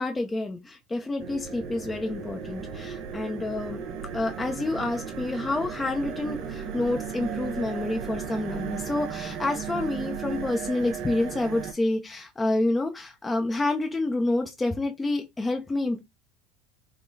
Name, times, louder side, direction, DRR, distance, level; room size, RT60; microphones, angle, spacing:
voice 1, 0.0-3.8 4.1-16.0, left 2 dB, 15° left, 0.7 m, -28 dB
sound 1, 1.2-11.7, right 7 dB, 55° right, 1.0 m, -35 dB
3.7 x 2.2 x 4.0 m
supercardioid pair, 95°, 0 cm